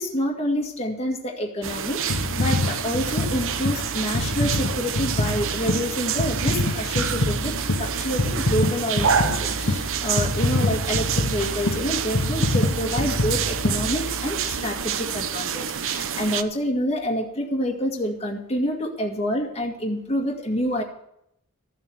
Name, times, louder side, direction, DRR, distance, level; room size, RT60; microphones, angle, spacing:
voice 1, 0.0-20.8, equal, 30° left, 0 dB, 2.0 m, -28 dB
sound 1, 1.6-16.4, right 7 dB, 65° right, 0.8 m, -28 dB
sound 2, 2.1-14.5 15.1-15.2, left 2 dB, 60° left, 1.5 m, -26 dB
14.0 x 7.6 x 7.7 m, 0.76 s
head